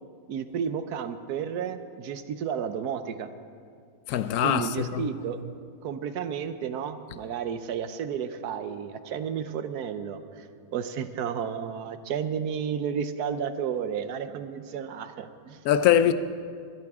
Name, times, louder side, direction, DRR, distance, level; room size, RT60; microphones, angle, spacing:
voice 1, 0.3-3.3 4.4-5.4 5.8-15.6, right 7 dB, 70° right, 1.2 m, -32 dB
voice 2, 4.1-5.1 15.6-16.1, left 10 dB, 70° left, 1.1 m, -22 dB
22.5 x 13.5 x 3.6 m
omnidirectional pair, 1.8 m